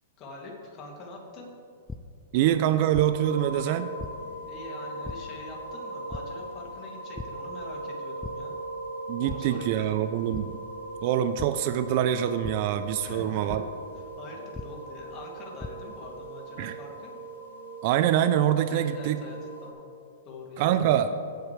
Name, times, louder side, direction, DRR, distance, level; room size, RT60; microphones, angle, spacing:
voice 1, 0.2-1.5 4.5-8.5 9.2-10.0 13.0-13.6 14.2-17.1 18.7-19.4 19.6-19.8 20.3-20.6, left 2 dB, 35° left, -1 dB, 2.6 m, -44 dB
sound 1, 1.9-2.0 2.9-3.0 4.0-4.1 5.0-5.1 6.1-6.2 7.1-7.2 7.7-7.9 8.2-8.3 9.3-9.4 10.3-10.4 11.4-11.5 12.4-12.5 13.5-13.6 14.5-14.6 15.3-15.7, left 3 dB, 5° left, 0.4 m, -36 dB
voice 2, 2.3-3.9 9.1-10.6 11.0-13.6 16.6-16.8 17.8-19.2 20.6-21.1, right 11 dB, 50° right, 10 dB, 0.5 m, -25 dB
sound 2, 3.1-19.7, right 1 dB, 75° right, 1.7 m, -40 dB
18.0 x 8.0 x 3.3 m, 2.5 s
hypercardioid pair, 140°, 0 cm